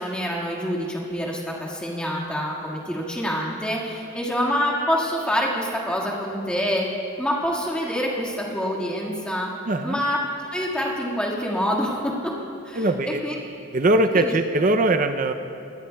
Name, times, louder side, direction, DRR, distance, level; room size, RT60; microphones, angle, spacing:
voice 1, 0.0-6.9 7.2-9.5 9.8-10.2 10.5-12.3 12.6-13.4 14.1-14.3, equal, 5° left, -4 dB, 1.8 m, -26 dB
voice 2, 9.7-10.0 12.8-13.2 13.7-15.3, right 2 dB, 35° right, 8 dB, 0.5 m, -21 dB
25.0 x 18.0 x 2.3 m, 2.7 s
head